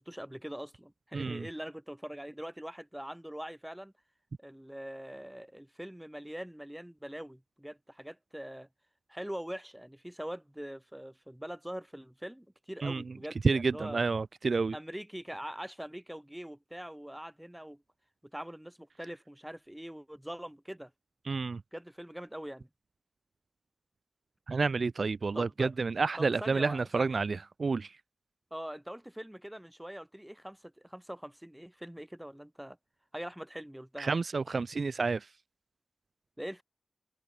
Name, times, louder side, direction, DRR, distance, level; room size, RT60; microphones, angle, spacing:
voice 1, 0.0-3.9 4.4-8.7 9.1-14.0 14.7-17.8 18.3-20.9 21.7-22.7 25.3-25.7 26.2-27.2 28.5-32.8 33.1-34.1 36.4-36.6, equal, 5° right, 2.6 m, -43 dB
voice 2, 1.1-1.5 12.8-13.0 13.4-14.7 21.3-21.6 24.5-27.9 34.0-35.3, right 4 dB, 70° right, 0.6 m, -29 dB
wide cardioid pair, 60°, 0 cm